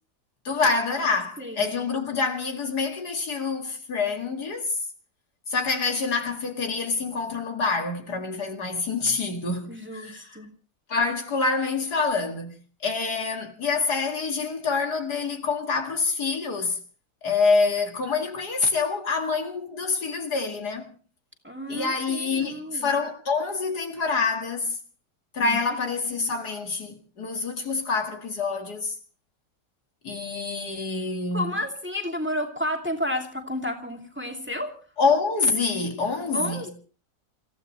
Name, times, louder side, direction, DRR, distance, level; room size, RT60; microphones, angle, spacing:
voice 1, 0.4-4.7 5.5-10.4 10.9-16.8 17.2-20.9 21.7-24.8 25.3-28.9 30.0-31.5 35.0-36.7, left 4 dB, 65° left, 2.5 m, -26 dB
voice 2, 1.4-1.7 9.7-10.5 21.4-22.9 25.4-25.6 31.3-34.7 36.3-36.7, left 1 dB, 5° right, 2.5 m, -31 dB
28.5 x 15.5 x 3.2 m
omnidirectional pair, 1.8 m